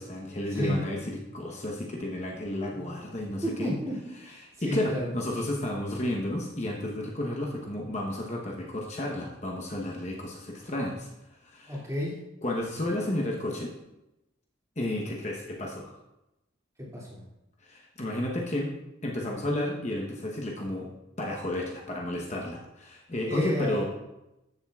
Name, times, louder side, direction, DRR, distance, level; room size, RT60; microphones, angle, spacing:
voice 1, 0.0-3.7 4.2-11.1 11.4-11.8 12.4-13.7 14.8-16.0 17.6-18.7 19.0-20.9 21.2-23.8, left 1 dB, 35° left, -1 dB, 1.0 m, -32 dB
voice 2, 0.5-0.8 2.7-2.9 3.4-3.9 4.2-5.1 11.7-12.2 16.8-17.2 23.3-23.8, equal, 15° right, -6 dB, 2.4 m, -32 dB
13.5 x 7.4 x 2.4 m, 0.92 s
head